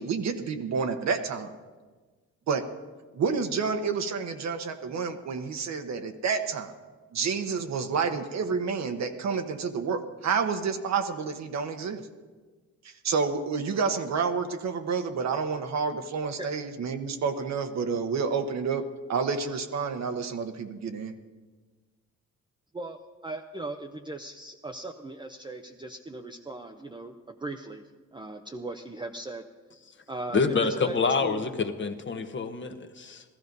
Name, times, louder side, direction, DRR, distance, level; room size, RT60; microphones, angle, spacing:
voice 1, 0.0-1.5 2.5-2.7 3.1-6.7 7.1-12.0 13.0-18.8 19.1-21.1, right 5 dB, 60° right, 7 dB, 1.2 m, -29 dB
voice 2, 22.7-27.9 28.1-29.4 30.1-31.0 31.2-31.5, right 2 dB, 15° right, 3 dB, 0.7 m, -38 dB
voice 3, 30.3-33.2, left 4 dB, 40° left, 7 dB, 1.2 m, -27 dB
15.0 x 13.5 x 5.4 m, 1.4 s
cardioid pair, 90°, 30 cm